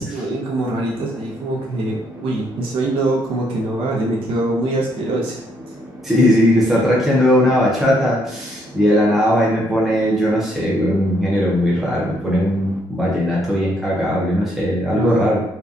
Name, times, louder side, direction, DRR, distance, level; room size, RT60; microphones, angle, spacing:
voice 1, 0.1-5.4 5.7-5.8 6.6-6.9 14.9-15.3, right 2 dB, 80° right, -3 dB, 0.7 m, -23 dB
sound 1, 0.6-12.8, right 1 dB, 30° right, 1.1 m, -38 dB
voice 2, 6.0-15.4, equal, ahead, -6 dB, 0.5 m, -18 dB
2.6 x 2.2 x 2.3 m, 0.79 s
cardioid pair, 165°, 9 cm